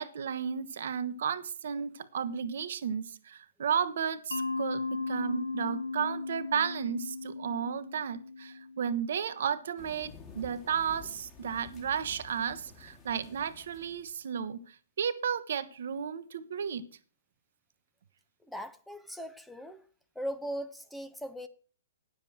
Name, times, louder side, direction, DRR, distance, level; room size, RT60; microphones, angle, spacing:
voice 1, 0.0-16.8, right 7 dB, 65° right, 0.9 m, -33 dB
Mallet percussion, 4.3-9.1, left 3 dB, 85° left, 0.8 m, -36 dB
sound 1, 9.8-14.2, left 5 dB, 25° left, 2.5 m, -51 dB
voice 2, 18.5-19.8 20.2-21.5, equal, ahead, 0.7 m, -39 dB
9.6 x 7.3 x 6.2 m
hypercardioid pair, 125°, 0 cm